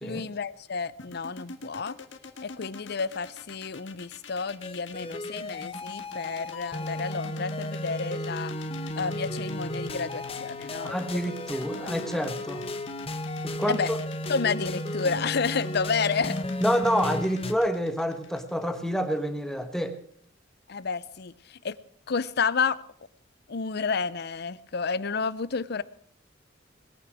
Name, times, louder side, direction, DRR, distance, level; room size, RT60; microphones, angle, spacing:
voice 1, 0.0-2.0 2.4-8.5 9.0-11.0 11.8-11.9 13.7-13.9 14.3-16.4 20.7-21.8 22.1-22.8 23.5-25.8, left 5 dB, 60° left, 0.6 m, -30 dB
sound 1, 1.0-19.1, left 3 dB, 80° left, 1.6 m, -45 dB
sound 2, 4.6-17.5, left 1 dB, 30° left, 1.0 m, -34 dB
voice 2, 10.8-12.7 13.4-13.8 16.6-20.0, equal, 5° left, 1.2 m, -28 dB
21.0 x 9.4 x 6.3 m
head